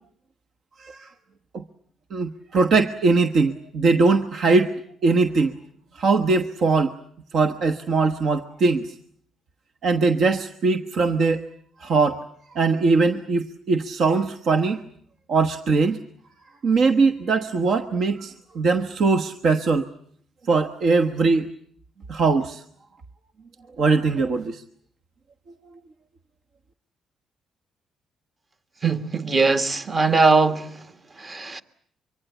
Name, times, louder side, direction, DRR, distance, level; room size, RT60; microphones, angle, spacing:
voice 1, 0.8-1.1 1.5-1.6 2.1-5.6 5.9-7.0 7.3-8.9 9.8-11.4 11.8-12.2 12.5-14.8 15.3-16.0 16.6-19.9 20.5-21.5 22.1-22.6 23.8-24.6, right 4 dB, 60° right, 1.2 m, -21 dB
voice 2, 28.8-30.7 31.2-31.6, right 3 dB, 35° right, 1.7 m, -20 dB
24.5 x 24.5 x 8.2 m
cardioid pair, 90°, 0 cm